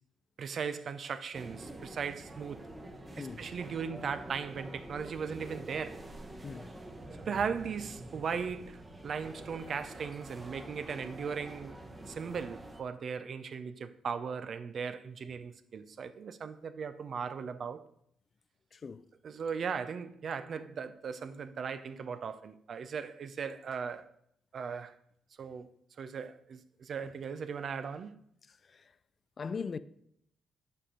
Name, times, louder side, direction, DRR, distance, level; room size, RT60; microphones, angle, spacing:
voice 1, 0.4-2.6 3.2-6.0 7.3-11.8 12.1-17.8 19.2-24.1 24.5-25.0 25.4-25.7 26.0-28.2, right 6 dB, 55° right, 0.5 m, -38 dB
sound 1, 1.3-12.8, right 1 dB, 20° right, 1.1 m, -47 dB
voice 2, 3.2-3.5 6.4-6.8 11.9-12.0 18.7-19.1 28.5-29.0 29.4-29.8, left 5 dB, 40° left, 0.4 m, -41 dB
7.6 x 4.5 x 5.0 m
cardioid pair, 90°, 0 cm